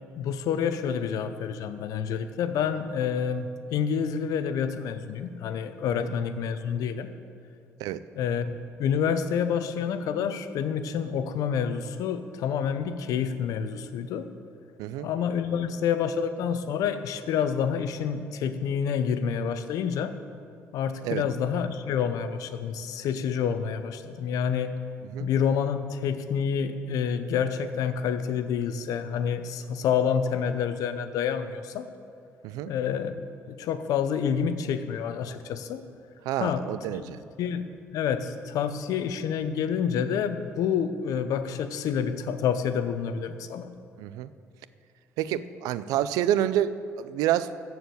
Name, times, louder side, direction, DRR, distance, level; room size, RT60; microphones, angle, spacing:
voice 1, 0.2-7.1 8.2-14.3 15.0-20.1 20.7-24.7 25.2-31.9 32.7-33.1 33.5-35.8 36.4-36.6 37.0-37.7 37.9-43.7, left 7 dB, 80° left, 10 dB, 0.7 m, -28 dB
voice 2, 36.2-37.2 44.0-44.3 45.2-47.5, right 11 dB, 90° right, 15 dB, 0.4 m, -28 dB
14.0 x 4.7 x 7.8 m, 2.4 s
supercardioid pair, 75°, 6 cm